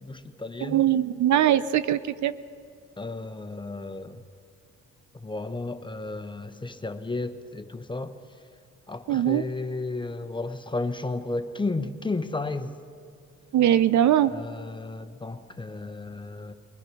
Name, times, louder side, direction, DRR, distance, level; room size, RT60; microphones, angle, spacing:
voice 1, 0.0-0.9 3.0-4.2 5.1-8.2 8.9-12.8 14.3-16.5, left 3 dB, 15° left, 8 dB, 1.1 m, -33 dB
voice 2, 0.6-2.3 9.1-9.4 13.5-14.3, right 11 dB, 70° right, 14 dB, 0.8 m, -21 dB
21.5 x 20.5 x 6.2 m, 2.3 s
cardioid pair, 90°, 30 cm